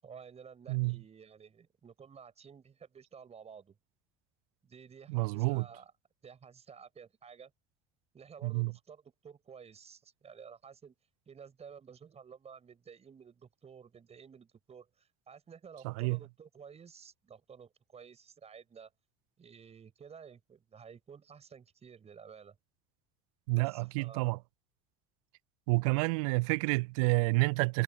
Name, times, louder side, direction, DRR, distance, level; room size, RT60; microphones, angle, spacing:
voice 1, 0.0-3.8 4.6-5.9 6.2-7.5 8.1-10.9 11.3-18.9 19.4-22.6 23.5-24.3, right 6 dB, 35° right, 6.0 m, -53 dB
voice 2, 0.7-1.0 5.1-5.6 8.4-8.7 15.8-16.2 23.5-24.4 25.7-27.8, right 26 dB, 70° right, 0.5 m, -29 dB
hypercardioid pair, 65°, 19 cm